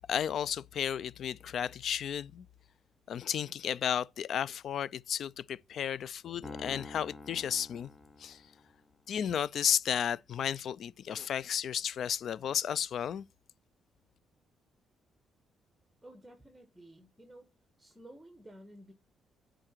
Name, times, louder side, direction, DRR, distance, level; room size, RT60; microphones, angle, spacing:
voice 1, 0.0-2.5 3.1-7.9 8.2-8.4 9.1-13.3, left 9 dB, 65° left, 0.4 m, -33 dB
Piano, 6.4-8.9, left 3 dB, 25° left, 0.9 m, -47 dB
voice 2, 16.0-17.5 17.8-18.9, right 1 dB, 10° right, 1.4 m, -53 dB
9.7 x 3.8 x 4.5 m
cardioid pair, 90°, 0 cm